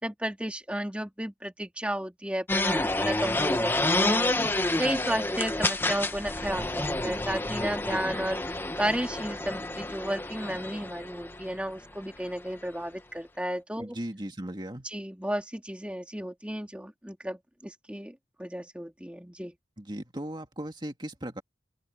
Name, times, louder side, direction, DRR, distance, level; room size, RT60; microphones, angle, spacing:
voice 1, 0.0-13.9 14.8-19.5, right 1 dB, 5° right, 2.2 m, -33 dB
sound 1, 2.5-11.5, left 2 dB, 10° left, 0.8 m, -29 dB
voice 2, 13.8-14.9 19.8-21.4, right 1 dB, 25° right, 2.4 m, -37 dB
head